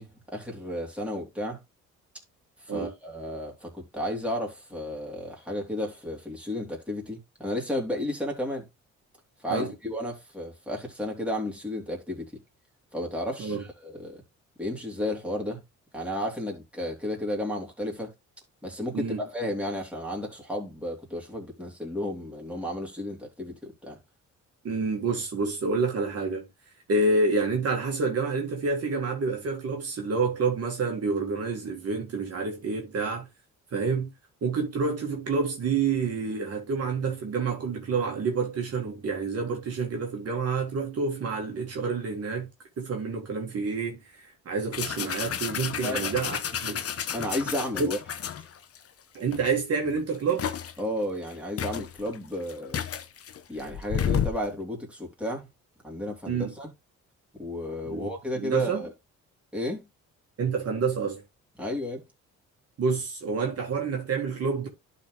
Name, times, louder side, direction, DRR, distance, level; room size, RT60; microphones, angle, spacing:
voice 1, 0.0-1.6 2.6-8.7 9.4-12.3 12.9-14.2 14.6-15.6 15.9-18.1 18.6-24.0 45.8-46.1 47.1-48.0 50.8-52.8 53.5-55.5 55.8-56.7 57.3-58.9 59.5-59.8 61.6-62.0, left 1 dB, 5° right, 3.3 m, -33 dB
voice 2, 24.6-26.5 26.9-33.3 33.7-34.1 34.4-42.5 42.8-46.8 47.8-47.9 49.1-50.4 56.3-56.5 57.9-58.1 58.3-58.8 60.4-61.2 62.8-64.7, right 4 dB, 55° right, 2.1 m, -28 dB
sound 1, 44.7-48.8 49.3-49.5 49.9-50.8 51.3-51.4 51.6-54.5, left 8 dB, 50° left, 0.9 m, -31 dB
11.5 x 4.3 x 3.2 m
cardioid pair, 90°, 30 cm